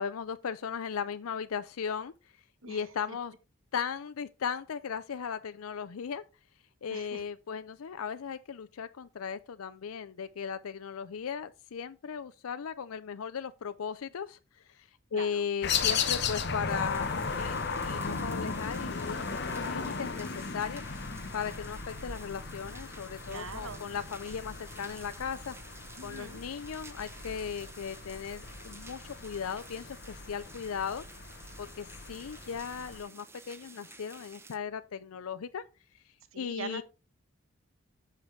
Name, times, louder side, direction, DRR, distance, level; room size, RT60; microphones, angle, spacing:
voice 1, 0.0-2.1 2.7-3.3 3.7-6.2 6.8-20.8 21.3-25.5 26.0-31.1 31.6-35.6 36.4-36.8, left 7 dB, 85° left, 0.5 m, -37 dB
voice 2, 6.9-7.2 15.1-15.4 23.3-23.8 26.0-26.4 36.3-36.8, right 4 dB, 75° right, 1.1 m, -42 dB
sound 1, 15.6-33.0, left 5 dB, 50° left, 0.9 m, -36 dB
sound 2, 16.7-34.6, right 3 dB, 10° right, 0.6 m, -52 dB
10.5 x 6.5 x 3.2 m
head